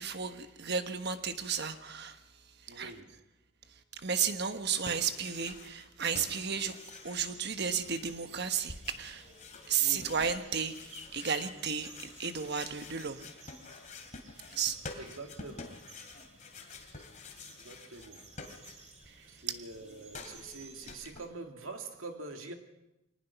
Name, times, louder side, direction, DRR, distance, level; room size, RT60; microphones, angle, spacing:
voice 1, 0.0-2.2 2.6-2.9 3.9-6.7 7.0-9.3 9.7-13.3 14.5-14.8 19.1-19.6, right 7 dB, 55° right, 8 dB, 1.3 m, -33 dB
voice 2, 2.7-3.2 9.8-10.1 14.9-15.9 17.5-18.2 19.3-22.5, right 3 dB, 80° right, 4 dB, 2.4 m, -45 dB
sound 1, 4.5-5.9 6.1-19.1 19.4-21.2, left 3 dB, 35° left, 2.7 m, -49 dB
sound 2, 6.0-21.0, right 2 dB, 35° right, 3.1 m, -55 dB
23.0 x 19.5 x 5.9 m, 0.95 s
head